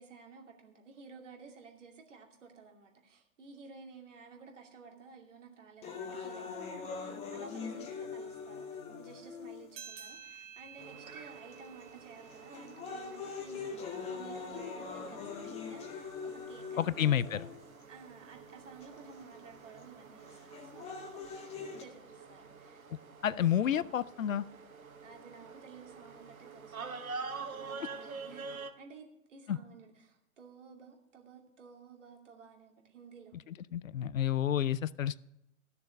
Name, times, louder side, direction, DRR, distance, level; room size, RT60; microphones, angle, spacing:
voice 1, 0.0-17.5 17.9-22.9 25.0-33.4, right 5 dB, 55° right, 1 dB, 2.6 m, -54 dB
sound 1, 5.8-9.8 10.6-10.7 11.5-11.8 12.3-17.8 18.8-18.9 20.3-21.8, left 5 dB, 15° left, 1.1 m, -42 dB
sound 2, 9.7-14.6, right 8 dB, 40° right, 1.8 m, -53 dB
sound 3, 10.8-28.7, right 4 dB, 70° right, 1.1 m, -48 dB
voice 2, 16.8-17.5 23.2-24.4 29.5-29.6 33.7-35.2, left 10 dB, 65° left, 20 dB, 0.5 m, -30 dB
14.0 x 6.8 x 5.5 m, 0.85 s
figure-of-eight pair, 115°, 43 cm